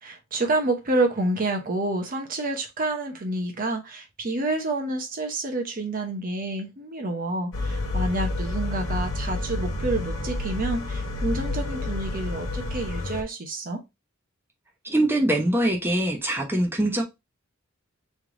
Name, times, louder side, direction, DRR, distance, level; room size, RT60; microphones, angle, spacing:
voice 1, 0.0-13.8, right 2 dB, 45° right, 0.8 m, -28 dB
sound 1, 7.5-13.2, left 2 dB, 75° left, 0.9 m, -29 dB
voice 2, 14.8-17.0, right 1 dB, 10° right, 0.8 m, -23 dB
3.3 x 3.2 x 3.8 m
head